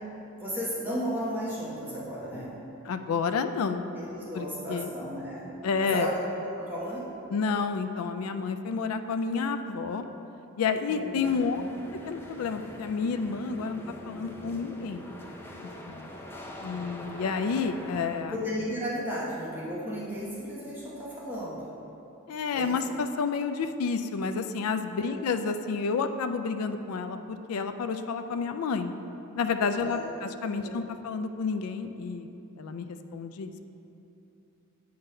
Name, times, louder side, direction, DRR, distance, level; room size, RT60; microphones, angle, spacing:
voice 1, 0.4-2.5 3.9-5.5 5.8-6.1 6.4-7.1 10.8-11.7 18.3-21.6 22.5-22.7 25.0-25.2 29.8-30.1 30.5-30.8, equal, 10° right, -8 dB, 1.1 m, -34 dB
voice 2, 2.9-3.8 4.3-4.9 5.6-6.1 7.3-10.0 10.6-11.6 12.1-15.1 15.9-16.1 16.6-18.4 22.3-28.9 29.3-32.3 32.6-33.6, left 5 dB, 90° left, 8 dB, 0.4 m, -30 dB
sound 1, 11.2-18.2, left 1 dB, 10° left, 0.5 m, -43 dB
8.0 x 3.9 x 5.4 m, 2.9 s
head